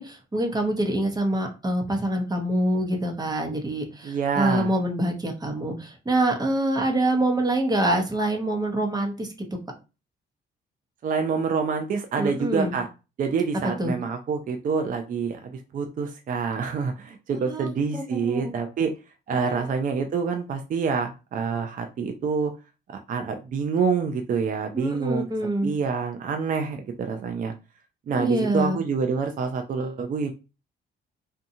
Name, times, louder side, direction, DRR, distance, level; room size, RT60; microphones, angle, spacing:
voice 1, 0.0-9.3 12.2-12.8 13.8-14.0 17.5-17.7 17.9-18.4 19.5-19.7 24.7-25.7 28.1-28.8, right 1 dB, 20° right, 3 dB, 0.8 m, -25 dB
voice 2, 4.0-4.7 11.0-12.9 13.2-18.9 19.3-22.5 23.1-25.3 25.6-27.5 28.1-30.3, right 5 dB, 45° right, 5 dB, 0.4 m, -27 dB
2.7 x 2.2 x 2.6 m, 0.30 s
cardioid pair, 90°, 20 cm